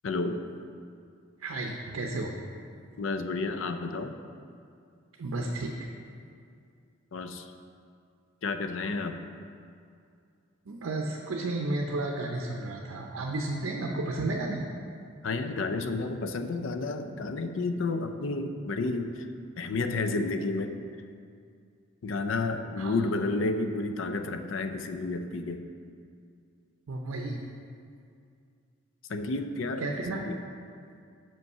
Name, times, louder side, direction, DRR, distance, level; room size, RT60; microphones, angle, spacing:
voice 1, 0.0-0.4 3.0-4.2 7.1-7.5 8.4-9.2 15.2-19.3 19.6-20.8 22.0-25.6 29.1-30.3, left 3 dB, 70° left, 8 dB, 0.4 m, -31 dB
voice 2, 1.4-2.4 5.2-5.9 10.7-14.6 22.8-22.9 26.9-27.4 29.8-30.3, right 2 dB, 90° right, 1 dB, 0.6 m, -32 dB
5.8 x 5.3 x 5.4 m, 2.3 s
head